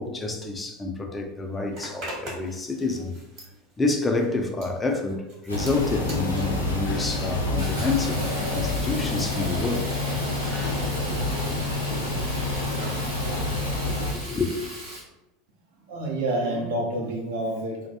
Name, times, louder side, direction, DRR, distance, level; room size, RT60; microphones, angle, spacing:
voice 1, 0.0-3.1 3.8-8.2 8.5-9.9 10.4-10.9 11.5-12.1 12.5-12.7 13.9-14.5, left 3 dB, 15° left, 0.4 m, -29 dB
Zipper (clothing), 1.7-7.9 8.2-13.1, right 1 dB, 45° right, 1.1 m, -43 dB
sound 1, 5.5-14.1, left 2 dB, 85° left, 0.4 m, -28 dB
Fill (with liquid), 7.6-15.0, right 1 dB, 85° right, 0.9 m, -37 dB
voice 2, 15.9-17.9, right 1 dB, 60° right, 0.6 m, -28 dB
2.2 x 2.2 x 2.8 m
figure-of-eight pair, 75°, 0 cm